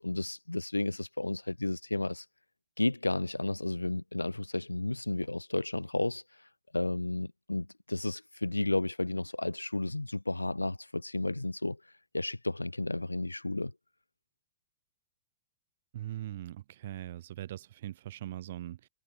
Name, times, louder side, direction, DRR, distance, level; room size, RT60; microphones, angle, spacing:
voice 1, 0.0-2.2 2.8-6.2 6.7-11.8 12.1-13.7, left 2 dB, 85° left, 6.0 m, -32 dB
voice 2, 15.9-18.9, right 13 dB, 60° right, 7.7 m, -41 dB
figure-of-eight pair, 90°, 0 cm